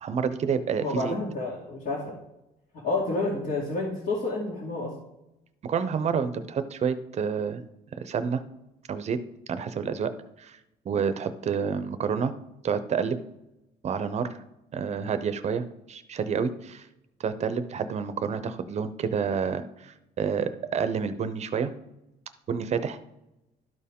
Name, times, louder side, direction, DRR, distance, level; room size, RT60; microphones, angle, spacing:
voice 1, 0.0-1.1 5.6-7.6 8.0-8.4 8.9-9.2 9.5-10.1 10.4-10.6 10.9-12.3 12.6-13.2 13.8-14.4 14.7-16.9 17.2-21.7 22.5-23.0, right 6 dB, 40° right, 11 dB, 0.6 m, -29 dB
voice 2, 0.8-2.2 2.8-4.9, left 2 dB, 60° left, -5 dB, 2.2 m, -29 dB
12.0 x 4.6 x 3.6 m, 0.91 s
cardioid pair, 110°, 17 cm